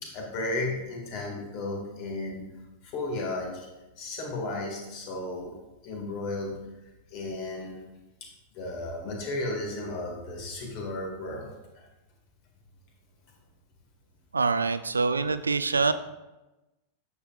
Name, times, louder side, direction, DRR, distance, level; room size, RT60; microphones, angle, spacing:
voice 1, 0.0-2.5 2.8-3.7 4.0-5.5 5.8-6.6 7.1-7.9 8.5-11.8, left 2 dB, 45° left, 0 dB, 2.1 m, -34 dB
voice 2, 14.3-15.9, right 4 dB, 75° right, 13 dB, 0.4 m, -25 dB
9.5 x 7.0 x 2.5 m, 1.0 s
figure-of-eight pair, 90°, 0 cm